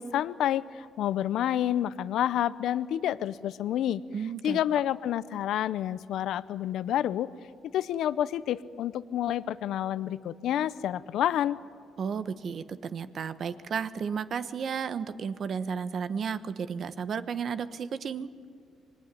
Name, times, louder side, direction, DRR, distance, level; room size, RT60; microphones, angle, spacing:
voice 1, 0.0-4.0 4.4-7.3 7.7-11.6, left 11 dB, 80° left, 16 dB, 0.7 m, -29 dB
voice 2, 4.1-4.6 12.0-18.3, right 6 dB, 55° right, 12 dB, 1.2 m, -33 dB
25.5 x 21.5 x 10.0 m, 2.2 s
cardioid pair, 90°, 0 cm